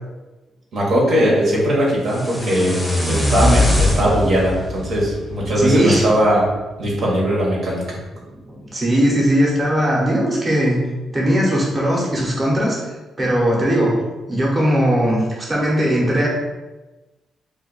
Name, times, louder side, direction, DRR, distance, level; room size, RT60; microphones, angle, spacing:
voice 1, 0.7-6.5 6.8-8.0, equal, 70° right, -4 dB, 1.0 m, -19 dB
sound 1, 2.1-6.2, left 1 dB, ahead, 0.8 m, -21 dB
voice 2, 5.6-6.0 8.2-10.8 11.1-12.8 13.2-14.0 14.3-16.3, equal, 25° right, -5 dB, 0.9 m, -19 dB
2.5 x 2.3 x 3.9 m, 1.1 s
cardioid pair, 75°, 0 cm